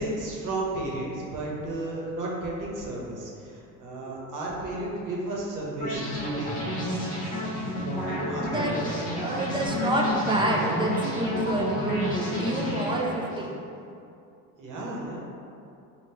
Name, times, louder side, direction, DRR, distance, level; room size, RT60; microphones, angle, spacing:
voice 1, 0.0-6.6 8.0-8.9 14.6-15.2, right 2 dB, 50° right, -4 dB, 1.1 m, -33 dB
sound 1, 5.8-13.5, left 1 dB, 20° left, 1.1 m, -30 dB
voice 2, 8.4-8.7 9.1-13.6, right 1 dB, 15° right, -2 dB, 0.4 m, -28 dB
3.6 x 2.4 x 4.4 m, 2.6 s
supercardioid pair, 100°, 39 cm